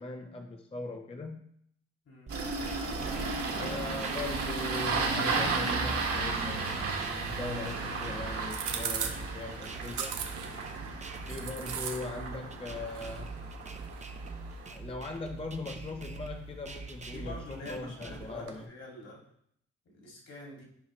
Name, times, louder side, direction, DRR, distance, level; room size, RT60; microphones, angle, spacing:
voice 1, 0.0-1.4 3.6-6.9 7.2-10.2 11.3-13.4 14.7-18.7, left 3 dB, 20° left, 3 dB, 0.6 m, -40 dB
sound 1, 2.3-18.3, right 3 dB, 25° right, 0.7 m, -44 dB
Engine starting, 2.3-14.7, right 4 dB, 50° right, 1.7 m, -34 dB
sound 2, 8.4-18.7, right 7 dB, 80° right, 1.0 m, -43 dB
voice 2, 17.1-19.3 19.9-20.6, left 1 dB, 55° left, -1 dB, 2.4 m, -46 dB
9.7 x 4.7 x 3.1 m, 0.68 s
cardioid pair, 90°, 30 cm